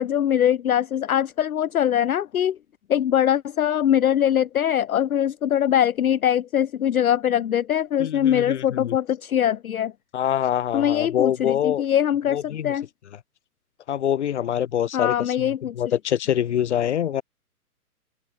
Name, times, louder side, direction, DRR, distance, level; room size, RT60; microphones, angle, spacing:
voice 1, 0.0-2.6 2.9-9.9 10.7-12.9 14.9-15.9, left 10 dB, 65° left, 0.6 m, -22 dB
voice 2, 8.0-9.0 10.1-11.8 12.3-12.7 13.9-17.2, left 10 dB, 45° left, 1.0 m, -25 dB
open air
figure-of-eight pair, 130°, 46 cm